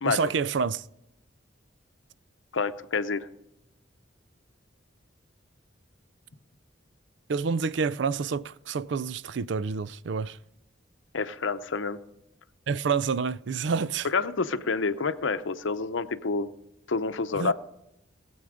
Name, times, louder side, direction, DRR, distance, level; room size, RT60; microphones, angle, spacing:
voice 1, 0.0-0.9 7.3-10.4 12.7-14.1 17.3-17.5, right 5 dB, 65° right, 0.4 m, -28 dB
voice 2, 2.5-3.3 11.1-12.0 14.0-16.5 16.9-17.5, left 4 dB, 75° left, 0.7 m, -28 dB
20.0 x 8.0 x 4.9 m
head